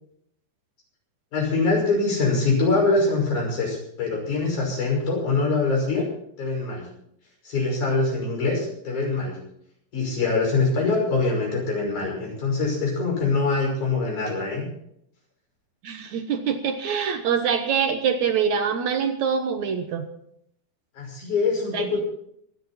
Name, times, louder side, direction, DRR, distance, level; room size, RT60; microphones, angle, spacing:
voice 1, 1.3-6.1 6.4-6.8 7.4-9.4 9.9-14.7 21.0-22.0, left 3 dB, 50° left, 0 dB, 7.0 m, -24 dB
voice 2, 15.8-20.1 21.7-22.0, right 7 dB, 65° right, 7 dB, 1.9 m, -24 dB
25.0 x 10.5 x 4.3 m, 0.71 s
omnidirectional pair, 4.6 m